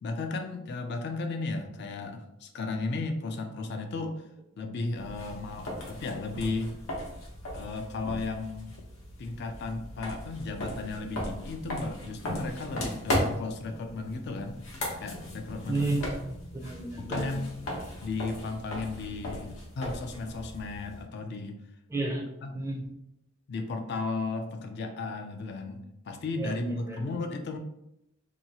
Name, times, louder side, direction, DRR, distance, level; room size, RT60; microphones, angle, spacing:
voice 1, 0.0-4.2 4.6-6.7 7.5-8.8 9.2-14.6 15.0-15.9 17.0-17.5 18.0-21.6 22.4-22.6 23.5-27.6, left 3 dB, 55° left, 5 dB, 0.3 m, -35 dB
sound 1, 5.0-21.0, left 1 dB, 75° left, 0.8 m, -37 dB
voice 2, 15.7-17.3 21.9-22.2 22.5-22.8 26.4-27.0, right 2 dB, 15° right, 0 dB, 0.4 m, -32 dB
2.8 x 2.3 x 2.7 m, 0.82 s
head